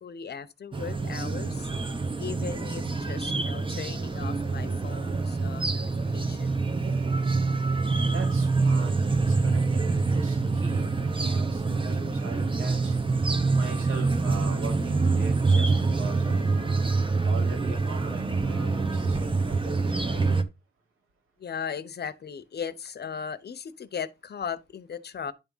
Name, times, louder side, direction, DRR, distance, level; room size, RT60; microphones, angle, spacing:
voice 1, 0.0-1.7 2.2-6.6 21.4-25.3, left 7 dB, 50° left, 0.9 m, -37 dB
sound 1, 0.7-20.4, right 3 dB, 25° right, 1.3 m, -26 dB
voice 2, 8.0-12.9 13.5-16.7 17.2-20.2, right 3 dB, 85° right, 3.7 m, -40 dB
10.5 x 3.6 x 5.5 m
wide cardioid pair, 115°, 21 cm